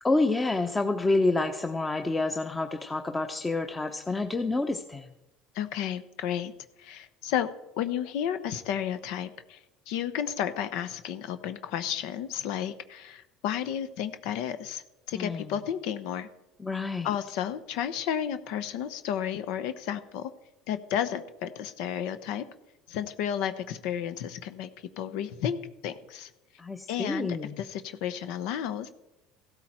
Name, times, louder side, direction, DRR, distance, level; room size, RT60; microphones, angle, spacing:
voice 1, 0.0-5.1 15.1-15.5 16.6-17.1 26.6-27.6, left 2 dB, 15° left, 6 dB, 0.9 m, -28 dB
voice 2, 5.5-6.5 6.8-7.5 7.8-9.6 9.9-16.3 17.0-20.3 20.7-22.4 22.9-24.7 25.0-25.6 25.8-26.3 26.9-28.9, left 9 dB, 75° left, 11 dB, 0.9 m, -32 dB
15.5 x 13.0 x 4.4 m, 0.96 s
supercardioid pair, 115°, 0 cm